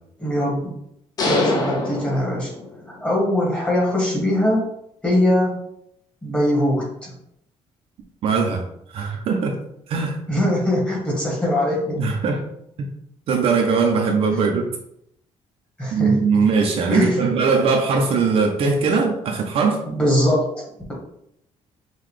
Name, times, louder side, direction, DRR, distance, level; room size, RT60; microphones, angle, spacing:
voice 1, 0.2-0.7 1.2-2.5 3.0-4.6 5.0-5.6 6.2-7.1 10.3-12.0 15.8-16.1 16.9-17.3 19.8-20.9, left 1 dB, 10° left, -4 dB, 1.3 m, -21 dB
sound 1, 1.2-3.0, left 2 dB, 35° left, 0.7 m, -24 dB
voice 2, 8.2-8.6 8.9-9.6 9.9-10.2 12.0-12.4 13.3-14.7 15.9-19.8, right 5 dB, 55° right, 2 dB, 0.6 m, -20 dB
5.8 x 2.3 x 3.2 m, 0.76 s
cardioid pair, 170°, 12 cm